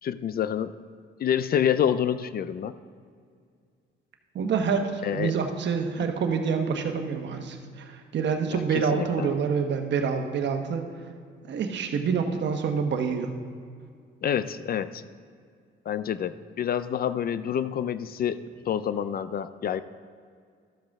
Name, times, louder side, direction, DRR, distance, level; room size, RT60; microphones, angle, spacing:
voice 1, 0.0-0.8 1.2-2.7 5.0-5.3 8.5-9.3 14.2-15.0 15.9-19.8, left 9 dB, 50° left, 13 dB, 0.5 m, -28 dB
voice 2, 4.3-10.8 11.5-13.3, right 6 dB, 65° right, 5 dB, 1.1 m, -27 dB
13.0 x 7.5 x 3.6 m, 2.2 s
cardioid pair, 90°, 20 cm